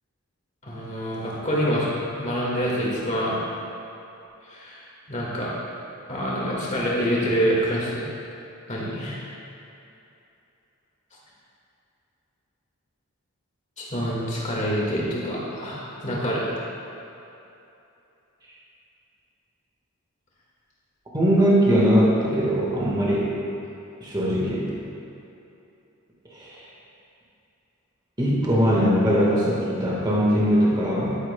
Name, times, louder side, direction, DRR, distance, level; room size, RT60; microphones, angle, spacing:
voice 1, 0.6-1.9 2.2-3.4 4.5-4.8 5.1-5.5 6.1-8.0 8.7-9.3 13.8-16.5, equal, 35° left, -5 dB, 1.8 m, -26 dB
voice 2, 21.1-23.3 24.0-24.7 26.3-26.7 28.2-31.2, equal, 20° right, -6 dB, 1.5 m, -21 dB
11.5 x 9.1 x 2.3 m, 2.9 s
head